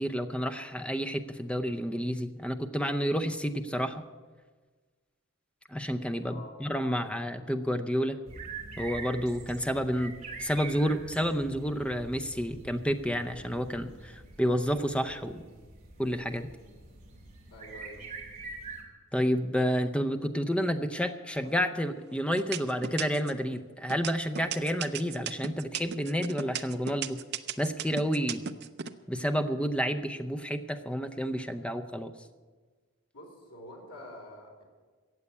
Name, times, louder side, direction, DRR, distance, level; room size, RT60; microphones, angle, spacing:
voice 1, 0.0-4.0 5.7-8.2 8.8-10.1 10.4-15.4 16.0-16.5 19.1-27.2 27.6-28.4 29.1-32.1, equal, 5° left, 8 dB, 0.6 m, -30 dB
voice 2, 6.2-6.6 17.5-18.1 33.1-34.6, left 1 dB, 85° left, 0 dB, 4.2 m, -47 dB
sound 1, 8.3-18.8, right 3 dB, 30° right, 2.4 m, -45 dB
sound 2, 21.4-21.9 22.4-23.4 23.9-28.9, right 8 dB, 45° right, 0.6 m, -35 dB
15.0 x 8.4 x 8.4 m, 1.4 s
head